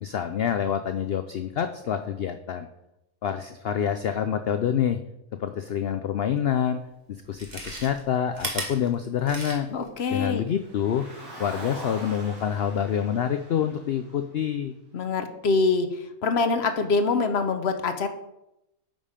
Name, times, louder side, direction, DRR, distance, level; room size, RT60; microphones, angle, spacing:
voice 1, 0.0-2.7 3.2-5.0 5.4-6.8 7.3-9.7 10.1-11.1 11.4-14.7, left 9 dB, 90° left, 8 dB, 0.5 m, -27 dB
Chewing mastication, 6.5-6.6 7.2-9.9 10.2-10.3, right 2 dB, 30° right, 1.4 m, -35 dB
voice 2, 9.7-10.4 14.9-18.1, left 4 dB, 50° left, 8 dB, 0.9 m, -25 dB
Car, 10.5-14.9, right 1 dB, 75° right, 3.3 m, -42 dB
9.0 x 5.5 x 5.1 m, 0.87 s
omnidirectional pair, 1.6 m